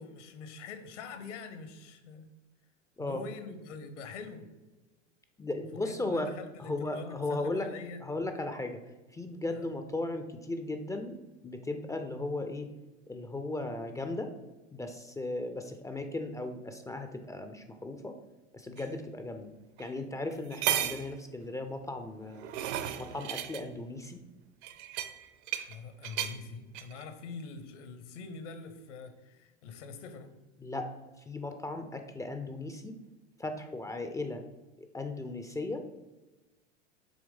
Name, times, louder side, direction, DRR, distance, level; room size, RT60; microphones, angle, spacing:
voice 1, 0.0-2.2 3.0-4.5 5.7-8.0 9.5-9.7 25.7-30.3, left 4 dB, 70° left, 9 dB, 1.1 m, -44 dB
voice 2, 5.4-6.3 6.6-7.7 8.0-8.8 9.1-12.7 13.1-14.3 14.7-18.1 18.5-19.5 19.8-22.5 23.0-24.2 30.6-30.9 31.2-33.0 33.4-34.4 34.8-35.8, left 2 dB, 10° left, 6 dB, 0.4 m, -36 dB
sound 1, 18.8-18.9 19.8-19.9 20.3-21.1 22.1-23.6 24.6-25.7 26.0-26.3 26.7-27.0, right 11 dB, 60° right, 0.7 m, -34 dB
7.1 x 3.2 x 5.2 m, 1.1 s
hypercardioid pair, 90°, 37 cm